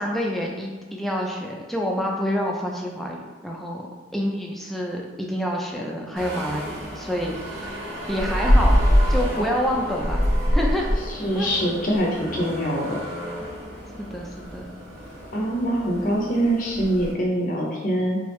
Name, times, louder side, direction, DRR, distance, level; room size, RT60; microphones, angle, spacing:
voice 1, 0.0-3.9 4.1-8.8 9.1-10.2 10.5-10.9 11.3-11.5 14.0-14.7, equal, ahead, -1 dB, 0.4 m, -28 dB
sound 1, 6.2-17.1, equal, 75° right, 1.5 m, -25 dB
voice 2, 11.2-13.0 15.3-18.2, right 1 dB, 45° left, -2 dB, 0.6 m, -24 dB
3.4 x 3.3 x 3.1 m, 1.4 s
head